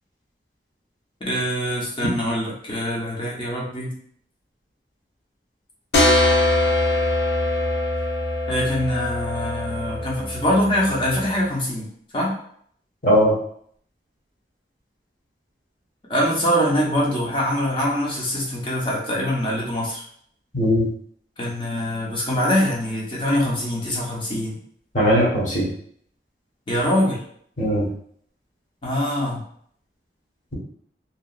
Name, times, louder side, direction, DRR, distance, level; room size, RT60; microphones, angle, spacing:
voice 1, 1.2-3.9 8.5-11.9 12.1-12.3 16.1-20.0 21.4-24.6 26.7-27.2 28.8-29.4, equal, 30° left, -4 dB, 0.7 m, -23 dB
sound 1, 5.9-11.4, left 1 dB, 80° left, 0.6 m, -22 dB
voice 2, 13.0-13.3 20.5-20.9 24.9-25.7 27.6-27.9, equal, 45° left, -5 dB, 1.0 m, -18 dB
2.8 x 2.3 x 2.3 m, 0.63 s
head